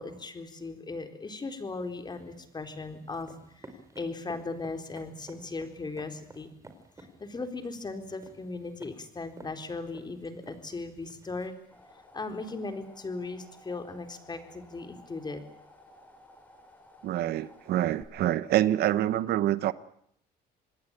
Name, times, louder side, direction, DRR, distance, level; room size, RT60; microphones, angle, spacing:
voice 1, 0.0-6.5 7.0-11.5 12.1-15.4, left 3 dB, 25° left, 4.1 m, -38 dB
sound 1, 1.6-11.5, right 2 dB, 20° right, 4.7 m, -54 dB
sound 2, 11.3-18.0, left 1 dB, 10° left, 5.0 m, -55 dB
voice 2, 17.0-19.7, right 13 dB, 70° right, 1.0 m, -26 dB
26.5 x 20.0 x 8.9 m
cardioid pair, 110°, 17 cm